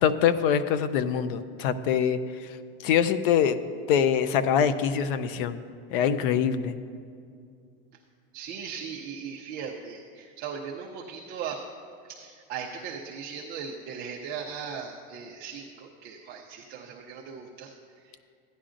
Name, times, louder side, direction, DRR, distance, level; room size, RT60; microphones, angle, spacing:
voice 1, 0.0-2.6 2.8-3.6 3.9-5.6 5.9-6.8, left 8 dB, 60° left, 13 dB, 0.6 m, -24 dB
voice 2, 8.3-11.6 12.0-18.2, right 6 dB, 30° right, -2 dB, 0.6 m, -38 dB
15.5 x 9.9 x 2.5 m, 2.3 s
supercardioid pair, 165°, 30 cm